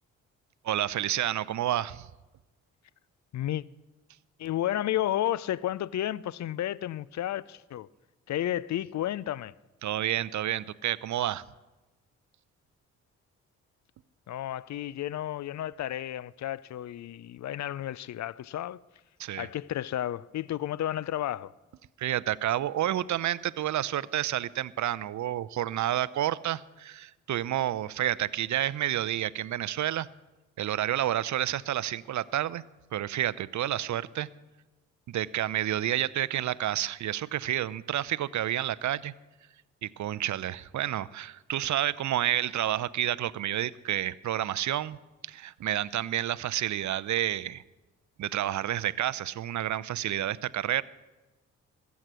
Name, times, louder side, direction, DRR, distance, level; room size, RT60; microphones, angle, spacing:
voice 1, 0.6-2.1 9.8-11.4 19.2-19.5 22.0-30.1 30.6-32.6 32.9-34.3 35.1-39.1 39.8-45.0 45.2-47.6 48.2-50.8, right 12 dB, 50° right, 0.6 m, -30 dB
voice 2, 3.3-3.6 4.4-7.9 8.3-9.5 14.3-18.8 19.4-21.5, left 12 dB, 45° left, 0.5 m, -32 dB
21.0 x 8.3 x 6.2 m
hypercardioid pair, 40°, 38 cm